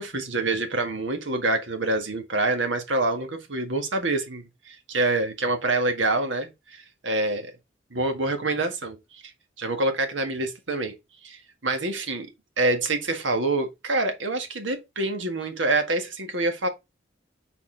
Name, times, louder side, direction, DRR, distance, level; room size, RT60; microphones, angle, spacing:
voice 1, 0.0-7.5 7.9-9.3 9.6-10.9 11.2-12.3 12.6-16.7, right 2 dB, 85° right, 1.6 m, -26 dB
6.3 x 4.2 x 3.9 m
head